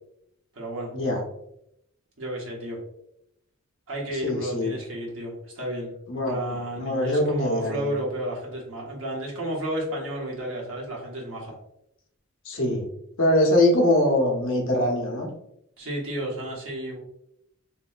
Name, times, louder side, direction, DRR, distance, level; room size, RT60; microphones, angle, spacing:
voice 1, 0.5-0.9 2.2-2.8 3.9-11.5 15.8-17.0, right 1 dB, 65° right, -3 dB, 1.0 m, -32 dB
voice 2, 4.2-4.7 6.1-6.4 6.8-7.8 12.5-12.9 13.2-15.3, left 1 dB, 65° left, 0 dB, 0.8 m, -22 dB
3.0 x 2.6 x 2.5 m, 0.78 s
head